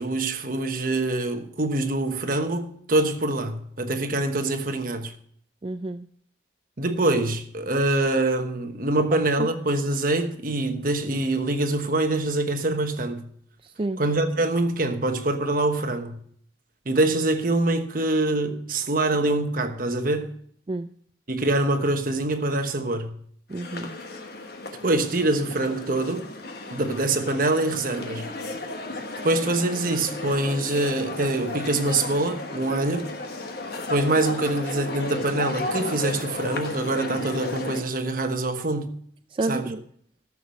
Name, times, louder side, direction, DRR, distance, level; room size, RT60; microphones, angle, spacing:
voice 1, 0.0-5.1 6.8-13.3 14.0-16.2 16.8-20.3 21.3-23.2 24.8-26.3 26.7-28.3 28.9-29.0 29.2-33.1 33.9-38.9 39.5-39.7, right 2 dB, 50° right, 1.2 m, -25 dB
voice 2, 5.6-6.1 9.4-9.5 13.6-14.0 20.7-20.9 23.5-24.0 39.3-39.8, right 2 dB, 30° right, 0.4 m, -30 dB
sound 1, 23.5-37.8, left 2 dB, 55° left, 1.3 m, -34 dB
13.5 x 7.1 x 6.4 m
head